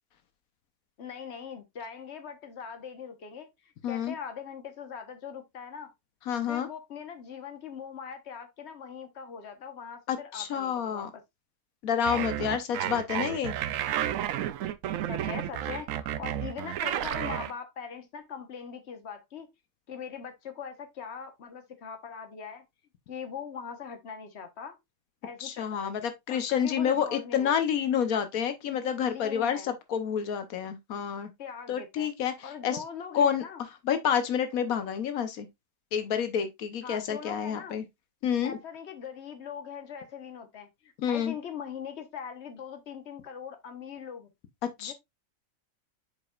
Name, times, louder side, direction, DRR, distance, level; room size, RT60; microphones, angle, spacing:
voice 1, 1.0-5.9 6.5-11.0 12.4-12.6 15.0-19.5 19.9-22.6 23.1-24.8 25.2-25.9 26.3-27.6 29.0-29.7 31.4-32.1 32.4-33.6 36.8-37.8 38.4-44.3 44.8-44.9, left 7 dB, 55° left, 1.4 m, -41 dB
voice 2, 3.8-4.2 6.3-6.7 10.1-11.1 11.8-13.5 25.4-31.3 31.7-32.8 33.1-33.4 33.8-35.5 35.9-37.8 38.2-38.6 41.0-41.3 44.8-44.9, left 8 dB, 90° left, 1.3 m, -29 dB
sound 1, 12.0-17.5, right 11 dB, 75° right, 0.9 m, -32 dB
8.1 x 5.0 x 2.4 m
omnidirectional pair, 1.5 m